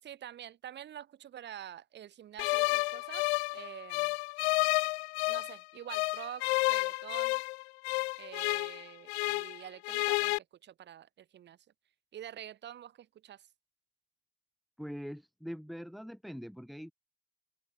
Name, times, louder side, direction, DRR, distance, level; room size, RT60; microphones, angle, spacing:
voice 1, 0.0-4.2 5.3-7.4 8.2-10.3 10.6-11.6 12.1-13.4, right 11 dB, 30° right, 8.0 m, -47 dB
sound 1, 2.4-5.6 5.9-9.6 9.8-10.4, left 26 dB, 70° left, 1.3 m, -31 dB
voice 2, 14.8-16.9, equal, ahead, 6.0 m, -43 dB
open air
supercardioid pair, 150°, 33 cm